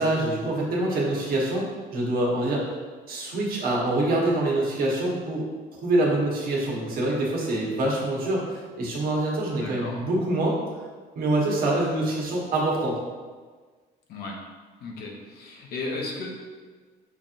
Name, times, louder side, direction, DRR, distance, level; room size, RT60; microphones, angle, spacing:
voice 1, 0.0-1.7 1.9-2.7 3.1-5.4 5.8-10.6 11.1-13.0, right 2 dB, 60° right, -3 dB, 1.1 m, -25 dB
voice 2, 9.6-10.0 14.1-14.4 14.8-16.3, left 3 dB, 70° left, -1 dB, 0.8 m, -35 dB
5.7 x 2.9 x 2.5 m, 1.4 s
cardioid pair, 110°, 17 cm